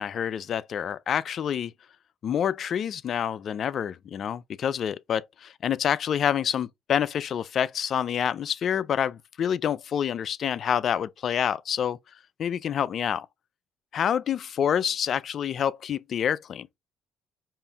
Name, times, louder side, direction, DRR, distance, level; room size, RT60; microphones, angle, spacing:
voice 1, 0.0-1.7 2.2-12.0 12.4-13.3 13.9-16.7, left 8 dB, 55° left, 0.3 m, -27 dB
5.4 x 2.5 x 2.3 m
supercardioid pair, 75°, 0 cm